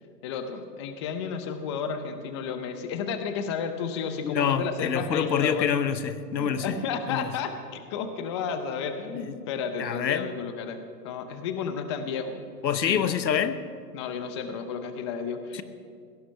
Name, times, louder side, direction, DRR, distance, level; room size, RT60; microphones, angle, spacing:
voice 1, 0.2-5.7 6.4-10.8 11.0-12.4 12.7-13.0 13.9-15.6, left 6 dB, 20° left, 8 dB, 0.6 m, -32 dB
voice 2, 4.2-6.8 7.1-7.3 9.2-9.3 9.8-10.3 12.6-13.6, left 8 dB, 85° left, 13 dB, 1.2 m, -26 dB
17.0 x 13.5 x 5.7 m, 2.3 s
hypercardioid pair, 150°, 50 cm